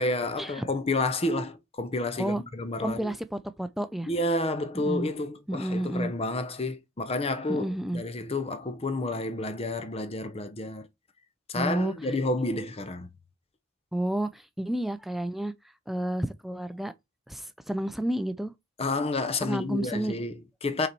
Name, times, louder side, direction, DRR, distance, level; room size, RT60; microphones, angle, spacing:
voice 1, 0.0-3.1 4.1-10.9 11.5-13.1 18.8-20.9, left 2 dB, 30° left, 0.7 m, -30 dB
voice 2, 2.8-4.1 4.7-5.1 5.5-6.1 7.5-8.0 11.5-11.9 13.9-15.5 15.9-16.9 17.3-18.5 19.4-20.2, right 1 dB, ahead, 0.4 m, -30 dB
5.6 x 4.1 x 4.5 m
head